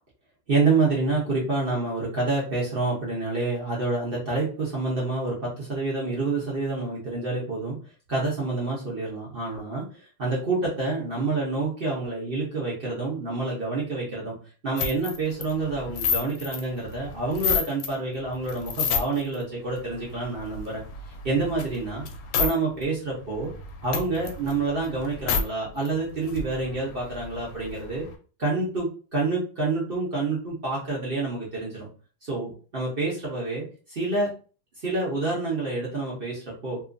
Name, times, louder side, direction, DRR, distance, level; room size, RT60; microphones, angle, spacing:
voice 1, 0.5-7.8 8.1-9.8 10.2-14.3 14.6-20.8 21.2-22.0 22.4-23.5 23.8-28.1 28.4-31.9 32.2-34.3 34.8-36.8, right 3 dB, 65° right, -5 dB, 0.5 m, -28 dB
sound 1, 14.8-17.9 18.3-19.3 19.8-22.5 22.8-22.9 23.2-25.4 25.9-26.0 26.1-28.1, left 5 dB, 75° left, 1.2 m, -30 dB
2.9 x 2.4 x 2.4 m, 0.38 s
omnidirectional pair, 2.1 m